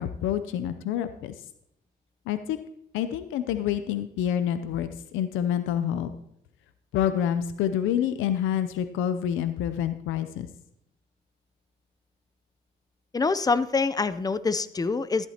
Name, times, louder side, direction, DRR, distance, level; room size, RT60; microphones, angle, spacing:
voice 1, 0.0-1.3 2.3-2.6 2.9-6.1 6.9-10.5, left 10 dB, 90° left, 11 dB, 0.6 m, -27 dB
voice 2, 13.1-15.3, left 4 dB, 20° left, 15 dB, 0.5 m, -25 dB
13.5 x 11.5 x 2.9 m, 0.76 s
cardioid pair, 90°, 20 cm